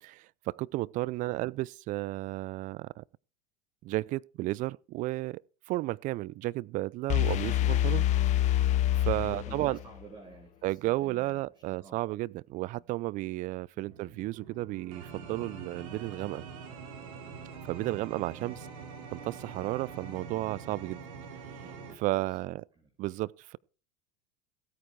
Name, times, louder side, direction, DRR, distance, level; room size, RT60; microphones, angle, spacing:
voice 1, 0.0-3.0 3.8-5.4 5.7-8.0 8.6-9.8 10.6-16.4 17.6-18.6 19.1-21.0 22.0-22.6 23.0-23.6, right 18 dB, 45° right, 0.5 m, -33 dB
voice 2, 1.0-1.4 7.3-7.5 8.0-8.2 9.1-12.0 18.3-18.5 21.6-22.9, right 5 dB, 25° right, 4.0 m, -51 dB
sound 1, 7.1-10.0, left 13 dB, 45° left, 0.6 m, -26 dB
sound 2, 13.8-22.0, right 5 dB, 70° right, 4.0 m, -45 dB
15.5 x 9.1 x 4.6 m
hypercardioid pair, 85°, 18 cm